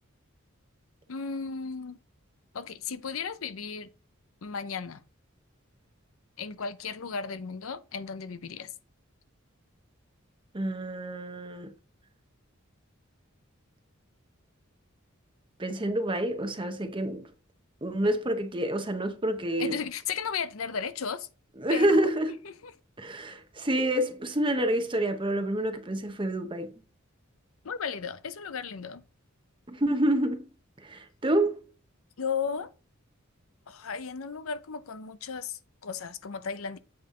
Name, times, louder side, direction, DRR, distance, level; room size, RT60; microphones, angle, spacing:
voice 1, 1.1-2.0 2.5-3.9 4.4-5.0 6.4-8.7 19.6-21.3 21.7-22.1 22.4-22.7 27.6-29.0 32.2-32.7 33.7-36.8, left 6 dB, 85° left, 0.7 m, -35 dB
voice 2, 10.5-11.7 15.6-17.3 17.8-19.8 21.6-22.3 23.0-26.7 29.7-30.5 30.8-31.6, right 1 dB, 25° right, 0.8 m, -28 dB
8.0 x 5.3 x 3.7 m
head